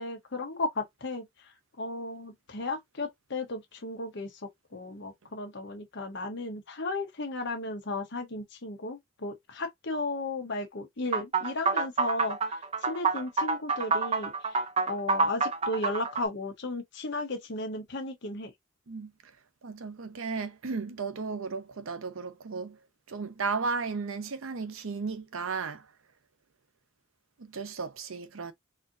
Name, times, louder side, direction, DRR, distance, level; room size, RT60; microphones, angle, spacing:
voice 1, 0.0-1.5 1.8-14.6 14.9-18.5, left 2 dB, 60° left, 1.0 m, -35 dB
sound 1, 11.1-16.2, right 4 dB, 30° right, 0.6 m, -27 dB
voice 2, 18.9-19.3 19.6-22.8 23.1-25.9 27.4-28.5, right 4 dB, 80° right, 0.7 m, -35 dB
4.2 x 2.6 x 2.6 m
head